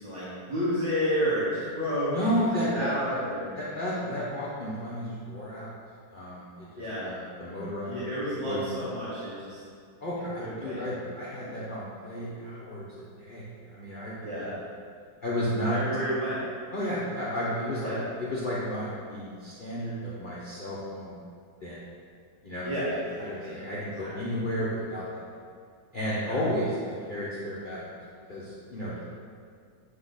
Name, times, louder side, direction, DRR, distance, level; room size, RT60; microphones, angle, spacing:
voice 1, 0.0-3.5 6.8-7.1 7.8-9.6 10.4-11.0 11.4-11.5 14.2-14.5 15.7-16.4 17.8-18.0 22.6-23.6 24.0-24.4 26.2-26.4, equal, 20° right, -11 dB, 1.1 m, -31 dB
voice 2, 2.1-3.2 3.6-5.7 6.1-8.0 8.4-8.8 10.0-14.5 15.2-15.8 16.7-21.2 21.6-21.8 22.4-25.2 25.9-27.9 28.3-29.0, equal, 70° left, -9 dB, 0.4 m, -32 dB
8.1 x 3.0 x 3.9 m, 2.1 s
omnidirectional pair, 2.1 m